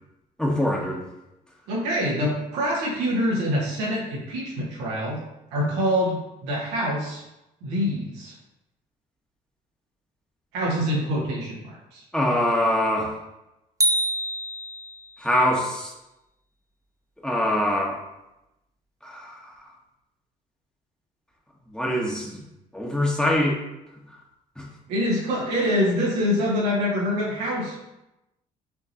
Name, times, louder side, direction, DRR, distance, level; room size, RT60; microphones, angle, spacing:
voice 1, 0.4-1.1 12.1-13.1 15.2-15.9 17.2-18.0 19.0-19.5 21.7-22.4 22.7-23.6 24.6-24.7, left 1 dB, 5° left, -2 dB, 1.2 m, -24 dB
voice 2, 1.7-5.2 5.5-7.2 7.6-8.3 10.5-12.0 24.9-27.8, equal, 85° right, -5 dB, 1.5 m, -25 dB
sound 1, 13.8-15.2, right 1 dB, 20° right, 0.7 m, -25 dB
6.2 x 2.9 x 2.9 m, 0.93 s
supercardioid pair, 70°, 17 cm